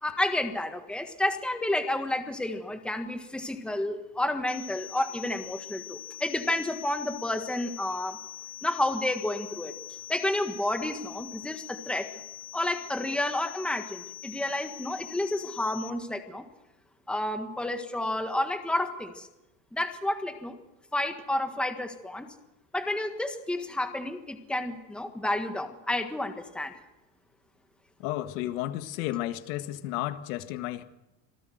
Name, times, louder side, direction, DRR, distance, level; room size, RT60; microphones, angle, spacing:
voice 1, 0.0-8.2 8.6-9.7 10.1-12.1 12.5-16.4 17.1-19.3 19.7-20.6 20.9-22.3 22.7-26.7, left 1 dB, ahead, 1.5 m, -30 dB
sound 1, 4.5-15.9, left 12 dB, 30° left, 1.4 m, -43 dB
voice 2, 28.0-30.8, left 14 dB, 75° left, 1.8 m, -32 dB
26.5 x 18.5 x 8.0 m
cardioid pair, 160°, 41 cm